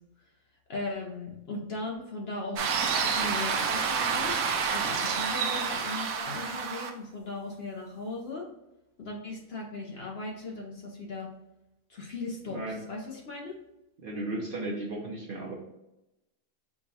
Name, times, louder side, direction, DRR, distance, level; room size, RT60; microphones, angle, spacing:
voice 1, 0.7-2.6 3.0-4.4 4.7-8.5 9.0-11.3 11.9-13.6, left 2 dB, 55° left, -1 dB, 0.8 m, -38 dB
sound 1, 2.6-6.9, right 6 dB, 80° right, 1.0 m, -29 dB
voice 2, 12.5-12.8 14.0-15.5, right 2 dB, 50° right, -3 dB, 0.7 m, -35 dB
4.6 x 2.2 x 4.0 m, 0.91 s
omnidirectional pair, 1.5 m